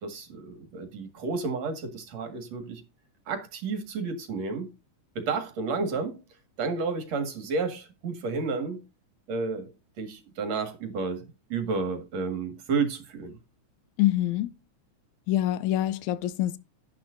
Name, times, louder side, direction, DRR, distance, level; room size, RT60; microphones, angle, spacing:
voice 1, 0.0-2.8 3.3-4.7 5.2-6.2 6.6-8.8 9.3-9.7 10.0-13.4, right 4 dB, 60° right, 3.0 m, -31 dB
voice 2, 14.0-14.5 15.3-16.6, left 14 dB, 80° left, 2.0 m, -25 dB
11.0 x 10.5 x 2.6 m
omnidirectional pair, 3.5 m